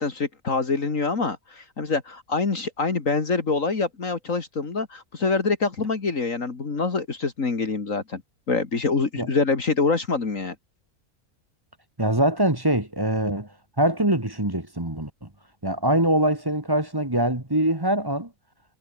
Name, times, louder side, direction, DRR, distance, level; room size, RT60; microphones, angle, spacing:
voice 1, 0.0-8.2 8.5-10.5, left 4 dB, 60° left, 2.7 m, -25 dB
voice 2, 12.0-13.5 13.8-15.3 15.6-18.3, right 1 dB, 15° right, 2.0 m, -23 dB
omnidirectional pair, 1.6 m